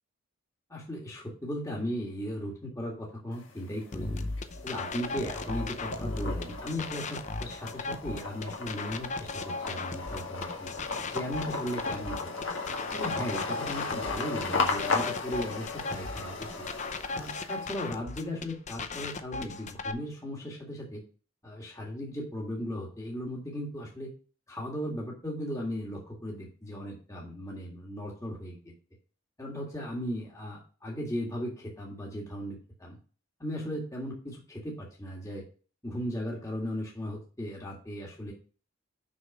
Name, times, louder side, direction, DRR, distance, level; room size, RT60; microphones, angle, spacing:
voice 1, 0.7-4.3 4.6-10.7 11.1-12.3 12.9-16.5 17.1-21.0 21.4-24.1 24.5-28.7 29.4-33.0 33.4-35.4 35.8-38.3, equal, 15° left, -3 dB, 1.9 m, -37 dB
sound 1, 3.3-4.0 4.4-17.9, left 3 dB, 60° left, 1.8 m, -35 dB
sound 2, 3.9-19.9, left 3 dB, 35° left, 0.6 m, -37 dB
6.4 x 5.8 x 5.3 m, 0.38 s
head